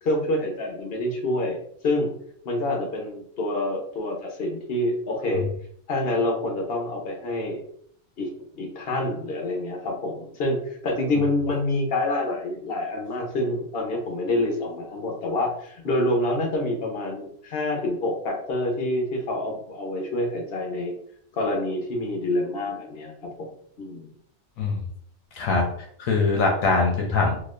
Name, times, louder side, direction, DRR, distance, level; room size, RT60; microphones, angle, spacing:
voice 1, 0.0-1.6 1.8-2.1 2.4-5.5 5.9-7.6 8.2-8.3 8.6-21.0 21.3-23.5 23.8-24.1, left 1 dB, 50° left, 1 dB, 0.9 m, -27 dB
voice 2, 25.3-25.6 26.0-27.4, left 3 dB, 80° left, 1 dB, 1.1 m, -22 dB
3.9 x 2.8 x 2.5 m, 0.65 s
omnidirectional pair, 1.4 m